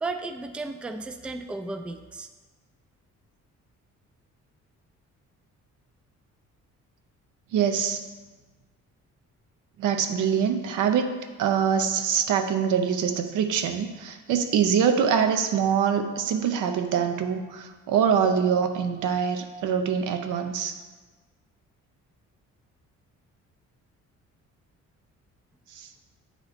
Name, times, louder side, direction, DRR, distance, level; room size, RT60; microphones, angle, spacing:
voice 1, 0.0-2.3, right 3 dB, 5° right, 7 dB, 0.3 m, -34 dB
voice 2, 7.5-8.0 9.8-20.8 25.7-25.9, right 7 dB, 85° right, 6 dB, 0.6 m, -24 dB
8.8 x 3.0 x 4.0 m, 1.3 s
cardioid pair, 90°, 30 cm